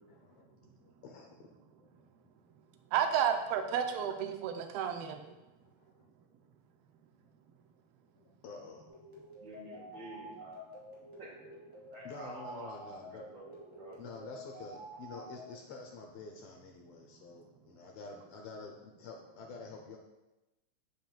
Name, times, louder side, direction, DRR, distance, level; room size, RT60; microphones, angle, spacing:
voice 1, 0.1-1.9 5.8-6.0 8.1-8.8 12.0-13.3 14.0-20.0, left 4 dB, 80° left, 1 dB, 1.3 m, -49 dB
voice 2, 2.9-5.2, right 8 dB, 85° right, 5 dB, 1.4 m, -31 dB
sound 1, 8.9-15.6, equal, 5° right, 0.7 m, -49 dB
voice 3, 9.4-10.6 11.2-11.6 11.9-12.7 13.1-14.0, right 2 dB, 70° right, -5 dB, 2.2 m, -50 dB
7.7 x 7.2 x 2.3 m, 1.0 s
omnidirectional pair, 3.4 m